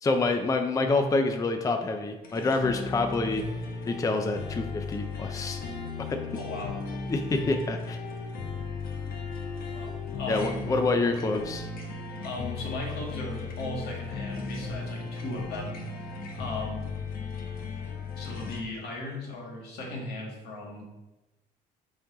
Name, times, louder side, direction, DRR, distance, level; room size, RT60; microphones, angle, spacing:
voice 1, 0.0-3.4 3.9-5.6 6.1-6.2 7.1-8.0 10.3-11.7, left 3 dB, 20° left, 5 dB, 0.5 m, -27 dB
sound 1, 2.2-18.6, left 4 dB, 60° left, 1.1 m, -36 dB
voice 2, 6.3-6.8 9.7-10.7 12.2-16.1 16.3-16.9 18.2-20.9, left 2 dB, 75° left, -2 dB, 1.9 m, -37 dB
6.9 x 4.0 x 3.9 m, 1.0 s
cardioid pair, 110°, 17 cm